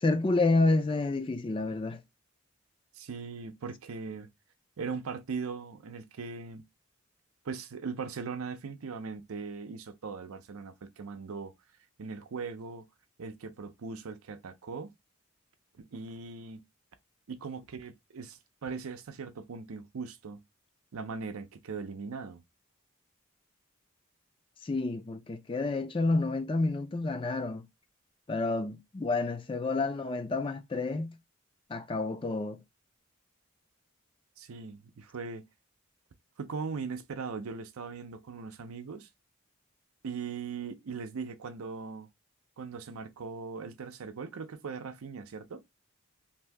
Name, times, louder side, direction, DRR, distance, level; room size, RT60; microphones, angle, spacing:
voice 1, 0.0-2.0 24.6-27.6 28.3-31.2 31.7-32.6, left 3 dB, 25° left, 0.4 m, -29 dB
voice 2, 2.9-4.3 4.8-6.7 7.4-11.5 12.0-12.9 13.2-14.9 15.8-16.6 17.3-20.4 20.9-22.4 34.4-35.5 36.4-39.1 40.0-42.1 42.6-45.6, right 5 dB, 90° right, 0.5 m, -39 dB
2.7 x 2.6 x 3.3 m
head